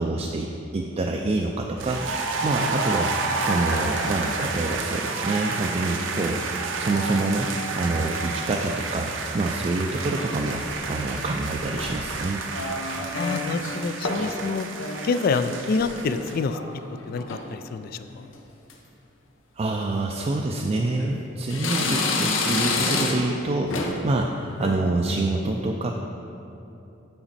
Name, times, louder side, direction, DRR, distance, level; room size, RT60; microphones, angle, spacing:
voice 1, 0.0-2.0 2.4-6.4 6.8-7.5 7.8-10.6 10.9-12.4 19.6-25.9, right 2 dB, 30° right, 1 dB, 0.3 m, -26 dB
sound 1, 1.8-16.4, right 3 dB, 75° right, 0.6 m, -30 dB
sound 2, 10.2-10.9 11.6-12.1 12.5-13.8 14.0-14.4 14.7-16.7 17.0-17.5 18.0-18.4 18.7-18.8 19.7-19.9 20.5-21.2 21.5-23.4 23.7-24.1 24.5-24.8, left 3 dB, 85° left, 0.8 m, -29 dB
voice 2, 13.1-14.7 15.0-16.6 17.1-17.9, left 4 dB, 50° left, 11 dB, 0.3 m, -26 dB
8.8 x 5.1 x 4.1 m, 2.8 s
head